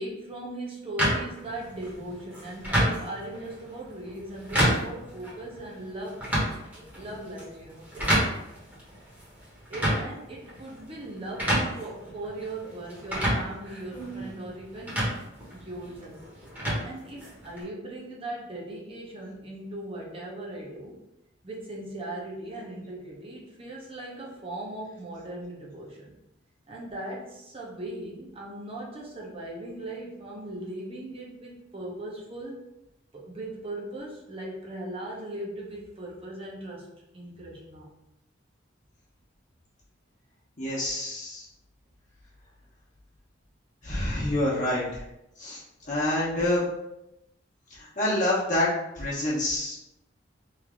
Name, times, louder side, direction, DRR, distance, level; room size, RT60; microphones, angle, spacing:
voice 1, 0.0-6.2 6.9-8.1 9.7-15.1 15.5-16.2 16.8-21.0 21.4-26.1 26.7-32.6 33.1-37.9, right 1 dB, 30° right, -3 dB, 0.9 m, -39 dB
sound 1, 1.0-17.6, equal, 10° right, 1.1 m, -30 dB
voice 2, 40.6-41.5 43.8-45.0 45.4-46.6 47.7-49.8, left 1 dB, 40° left, -8 dB, 1.0 m, -27 dB
3.2 x 2.7 x 3.6 m, 0.89 s
head